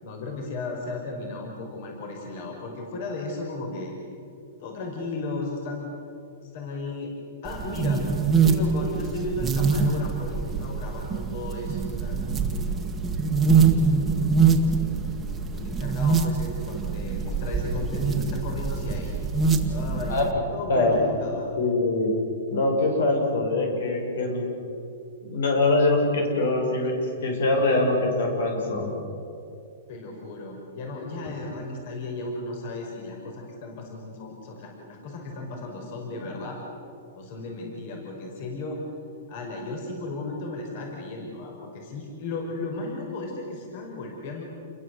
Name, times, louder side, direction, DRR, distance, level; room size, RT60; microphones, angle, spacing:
voice 1, 0.0-3.9 4.6-5.9 6.4-7.1 7.4-8.0 8.4-12.8 13.5-14.3 14.7-19.1 19.7-21.5 29.9-36.6 37.2-38.8 39.3-44.4, left 2 dB, 50° left, 1 dB, 5.4 m, -35 dB
sound 1, 7.5-20.3, right 5 dB, 10° right, 1.8 m, -24 dB
voice 2, 21.6-22.1 22.5-24.5 25.2-27.0 27.2-28.9, left 2 dB, 80° left, 2 dB, 7.3 m, -23 dB
29.0 x 22.0 x 8.0 m, 2.7 s
hypercardioid pair, 160°, 0 cm